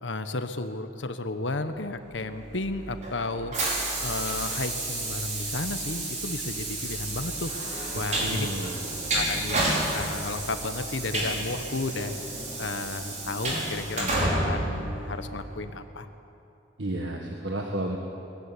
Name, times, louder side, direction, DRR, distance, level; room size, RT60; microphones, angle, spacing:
voice 1, 0.0-3.5 4.0-7.5 7.9-8.5 9.1-12.1 12.6-16.1, left 2 dB, 80° left, 9 dB, 1.2 m, -33 dB
Train, 2.4-15.6, right 1 dB, 40° right, 4.7 m, -31 dB
voice 2, 8.2-8.8 16.8-18.0, right 1 dB, 75° right, 1 dB, 1.6 m, -31 dB
21.0 x 15.0 x 9.9 m, 2.9 s
head